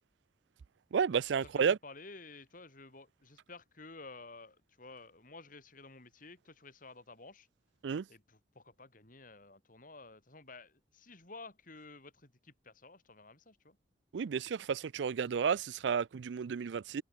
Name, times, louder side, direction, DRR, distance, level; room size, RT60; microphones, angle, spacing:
voice 1, 0.9-1.8 7.8-8.0 14.1-17.0, right 6 dB, 75° right, 0.4 m, -32 dB
voice 2, 1.4-7.5 8.1-13.8 15.2-15.4, left 3 dB, 50° left, 4.1 m, -53 dB
head